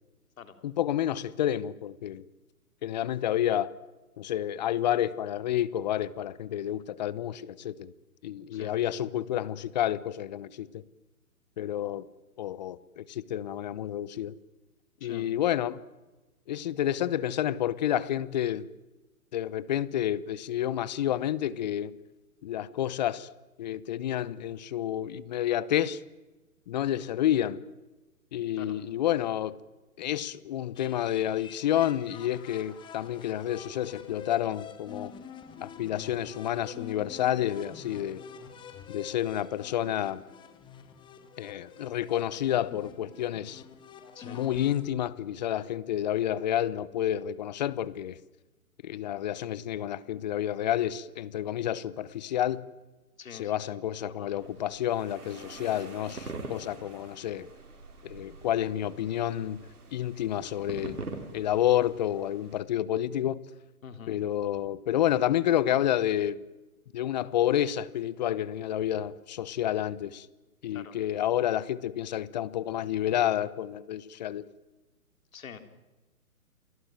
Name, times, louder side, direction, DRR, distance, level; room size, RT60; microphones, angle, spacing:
voice 1, 0.6-2.2 2.8-3.7 4.2-7.9 8.2-10.7 11.6-12.1 12.4-14.3 15.0-15.8 16.5-18.7 19.3-21.9 22.4-23.3 23.6-26.0 26.7-27.6 28.3-29.6 30.0-35.1 35.6-38.2 38.9-40.2 41.4-43.6 44.2-48.2 48.8-52.6 53.4-57.5 58.0-59.6 59.9-61.0 61.3-63.4 64.1-66.4 66.9-70.3 70.6-74.5, left 11 dB, 30° left, 0.9 m, -29 dB
voice 2, 15.0-15.3 28.6-28.8 44.1-44.4 53.2-53.8 54.1-54.5 63.8-64.2 70.7-71.0 75.3-75.6, left 7 dB, 65° left, 3.7 m, -46 dB
sound 1, 30.7-44.8, left 7 dB, 10° left, 1.5 m, -47 dB
sound 2, 54.4-62.6, right 3 dB, 85° right, 5.3 m, -44 dB
28.5 x 18.0 x 9.2 m
hypercardioid pair, 145°, 44 cm